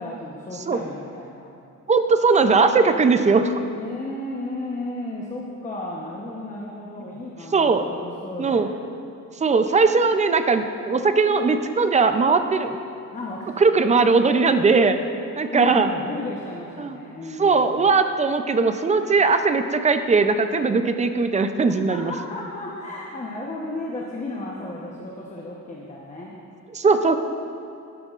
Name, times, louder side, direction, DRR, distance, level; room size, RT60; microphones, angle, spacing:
voice 1, 0.0-1.5 3.7-8.8 13.1-13.6 15.5-17.9 21.7-26.3, left 2 dB, 25° left, -2 dB, 0.9 m, -34 dB
voice 2, 1.9-3.6 7.5-7.9 8.4-8.7 9.4-12.8 13.6-14.9 15.4-15.9 16.8-17.0 17.4-22.1 26.7-27.2, right 4 dB, 20° right, 8 dB, 0.4 m, -19 dB
12.5 x 12.0 x 2.5 m, 2.7 s
cardioid pair, 140°, 32 cm